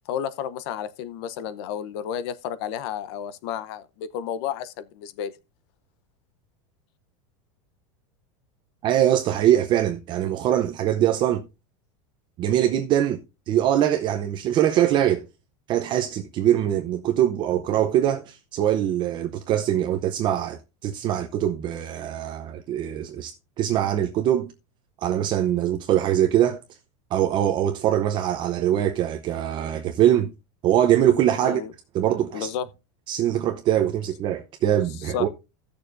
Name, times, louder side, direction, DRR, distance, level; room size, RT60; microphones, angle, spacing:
voice 1, 0.1-5.3 31.4-31.7 32.3-32.7 35.1-35.3, left 9 dB, 55° left, 0.8 m, -31 dB
voice 2, 8.8-11.4 12.4-13.2 13.5-15.3 15.7-24.5 25.0-26.6 27.1-30.3 30.6-31.6 31.9-32.5 33.1-35.3, right 11 dB, 30° right, 0.7 m, -22 dB
16.0 x 6.8 x 2.6 m
supercardioid pair, 170°, 16 cm